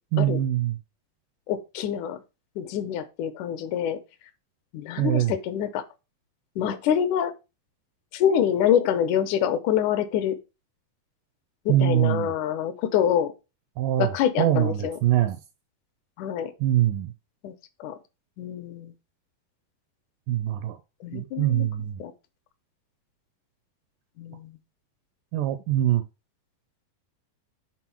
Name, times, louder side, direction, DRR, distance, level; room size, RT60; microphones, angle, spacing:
voice 1, 0.1-0.8 5.0-5.3 11.7-12.3 13.8-14.1 14.4-15.4 16.6-17.1 20.3-20.8 21.1-22.0 25.3-26.0, right 12 dB, 80° right, 2.0 m, -23 dB
voice 2, 1.5-2.2 2.6-4.0 4.7-5.8 6.6-7.3 8.1-10.4 11.7-13.3 14.0-15.0 16.2-16.5 17.4-17.5 17.8-18.0 18.4-18.9 21.0-21.7 22.0-22.1 24.2-24.6, left 9 dB, 75° left, 2.0 m, -26 dB
6.2 x 4.0 x 5.7 m
omnidirectional pair, 4.2 m